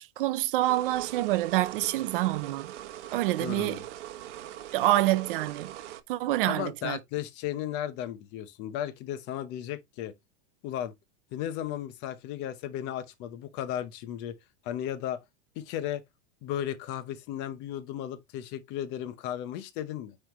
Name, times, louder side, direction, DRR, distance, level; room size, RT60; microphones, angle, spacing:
voice 1, 0.0-2.7 3.1-3.8 4.7-5.7 6.1-7.0, right 16 dB, 50° right, 0.6 m, -27 dB
sound 1, 0.6-6.0, right 12 dB, 75° right, 1.2 m, -42 dB
voice 2, 3.4-3.8 6.5-10.1 10.6-10.9 11.3-14.4 14.6-15.2 15.6-16.0 16.4-20.2, left 11 dB, 30° left, 0.8 m, -35 dB
9.4 x 3.4 x 3.1 m
supercardioid pair, 165°, 35 cm